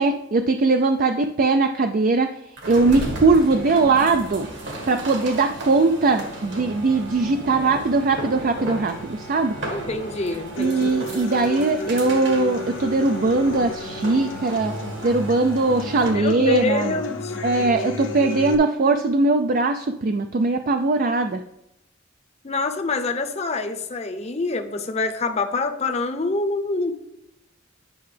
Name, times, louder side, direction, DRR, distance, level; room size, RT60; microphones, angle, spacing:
voice 1, 0.0-2.3 2.7-4.5 4.9-9.5 10.6-14.7 15.0-17.0 17.4-21.4, right 3 dB, 45° right, 7 dB, 0.4 m, -20 dB
sound 1, 2.6-16.3, right 1 dB, 65° right, 1.8 m, -34 dB
voice 2, 9.7-11.0 16.1-17.3 22.4-27.0, left 3 dB, 35° left, 6 dB, 0.7 m, -26 dB
Human voice / Acoustic guitar, 10.6-18.5, left 1 dB, 70° left, 1.0 m, -32 dB
10.0 x 5.6 x 3.3 m, 0.84 s
head